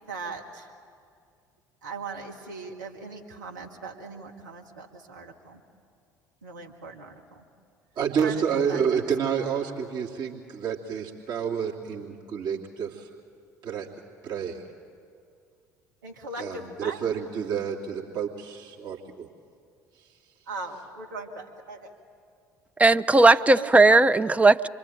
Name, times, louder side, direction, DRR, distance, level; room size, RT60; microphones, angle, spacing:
voice 1, 0.1-0.6 1.8-5.6 6.4-7.1 8.2-8.3 8.7-8.8 16.0-17.0 20.5-21.9 23.3-24.0, right 3 dB, 75° right, 0 dB, 2.0 m, -39 dB
voice 2, 7.9-13.1 13.6-13.9 14.2-14.7 16.4-19.3 19.9-20.2, right 7 dB, 45° right, -2 dB, 2.9 m, -29 dB
voice 3, 22.8-24.7, right 2 dB, 15° right, 11 dB, 0.7 m, -17 dB
28.0 x 23.0 x 9.1 m, 2.3 s
figure-of-eight pair, 60°, 10 cm